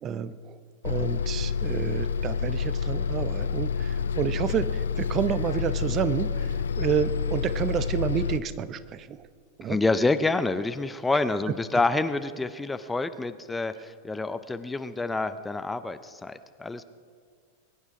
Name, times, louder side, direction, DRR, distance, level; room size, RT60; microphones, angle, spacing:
voice 1, 0.0-0.6 0.8-9.3 9.6-9.8 11.1-11.2, right 8 dB, 30° right, 14 dB, 0.7 m, -30 dB
Bus, 0.8-8.4, left 6 dB, 65° left, 0.4 m, -28 dB
voice 2, 9.6-16.8, left 3 dB, 10° left, 11 dB, 0.6 m, -27 dB
22.0 x 9.7 x 4.9 m, 2.1 s
figure-of-eight pair, 90°, 0 cm